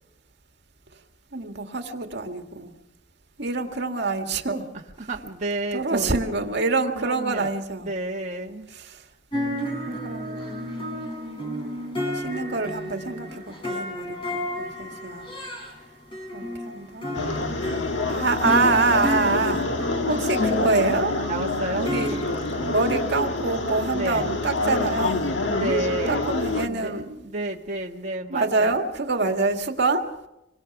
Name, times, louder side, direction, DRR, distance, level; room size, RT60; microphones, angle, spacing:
voice 1, 1.3-2.7 3.4-4.7 5.7-7.9 8.7-9.0 9.8-15.3 16.3-17.2 18.1-19.7 20.1-21.2 21.8-22.2 22.5-25.3 26.1-27.2 28.3-30.1, right 3 dB, 60° right, 5 dB, 2.0 m, -26 dB
voice 2, 5.0-6.2 6.9-7.5 7.8-8.7 17.0-17.6 21.2-22.2 23.9-24.3 25.5-26.3 26.6-28.7, right 2 dB, 40° right, -1 dB, 1.5 m, -31 dB
sound 1, 9.3-15.7 16.1-23.1, left 1 dB, 30° left, 6.3 m, -32 dB
sound 2, 17.1-26.7, left 2 dB, 70° left, 1.7 m, -27 dB
27.0 x 21.5 x 6.1 m, 0.91 s
head